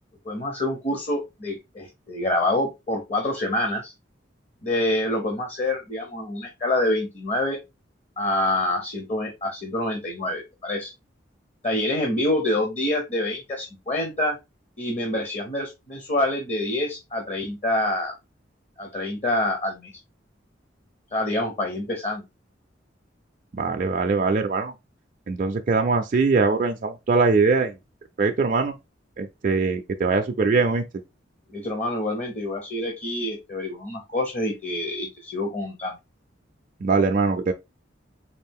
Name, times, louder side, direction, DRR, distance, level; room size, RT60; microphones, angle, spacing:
voice 1, 0.2-3.9 4.6-7.6 8.2-10.9 11.6-14.4 14.8-18.1 18.8-19.9 21.1-22.2 31.5-36.0, left 1 dB, 40° left, 0.8 m, -26 dB
voice 2, 23.5-24.7 25.3-27.8 28.2-28.7 29.2-30.8 36.8-37.5, right 4 dB, 45° right, 0.4 m, -22 dB
4.2 x 2.4 x 3.5 m
head